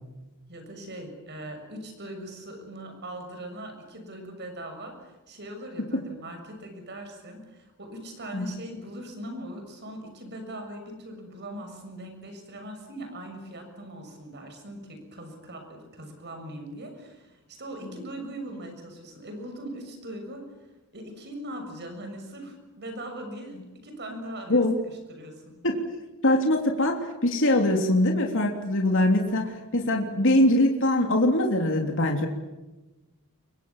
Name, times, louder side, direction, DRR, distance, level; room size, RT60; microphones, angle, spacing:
voice 1, 0.5-20.4 20.9-23.6 23.8-25.6, right 1 dB, 50° right, 5 dB, 7.0 m, -40 dB
voice 2, 24.5-24.8 25.6-25.8 26.2-32.3, left 1 dB, 60° left, 2 dB, 3.2 m, -22 dB
29.5 x 24.0 x 7.3 m, 1.1 s
head